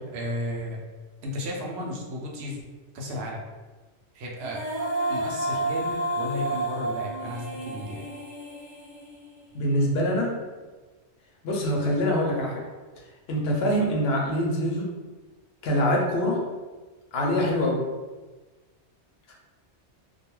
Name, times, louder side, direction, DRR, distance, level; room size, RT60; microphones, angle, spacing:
voice 1, 0.1-0.8 1.2-2.6 2.9-3.4 4.1-4.6 5.1-8.1, left 1 dB, 75° right, -2 dB, 0.8 m, -34 dB
Female singing, 4.4-9.6, right 1 dB, 25° right, 0.4 m, -31 dB
voice 2, 9.5-10.4 11.4-12.6 13.3-14.9 15.6-16.4 17.1-17.9 19.3-19.4, equal, 65° left, -2 dB, 0.8 m, -24 dB
2.3 x 2.2 x 3.0 m, 1.3 s
omnidirectional pair, 1.2 m